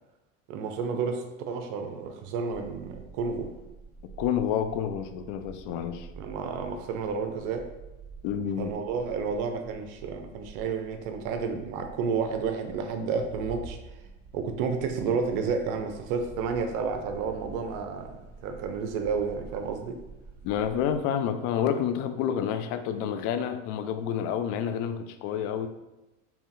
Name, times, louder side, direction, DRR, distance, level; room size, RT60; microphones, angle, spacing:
voice 1, 0.5-3.5 6.2-7.7 8.6-13.8 14.3-20.0, right 5 dB, 55° right, 6 dB, 0.6 m, -31 dB
sound 1, 2.5-21.0, right 4 dB, 5° left, 1.0 m, -48 dB
voice 2, 4.2-6.1 8.2-8.7 20.4-25.7, left 8 dB, 55° left, 9 dB, 0.4 m, -29 dB
3.8 x 2.8 x 2.6 m, 1.0 s
hypercardioid pair, 95°, 37 cm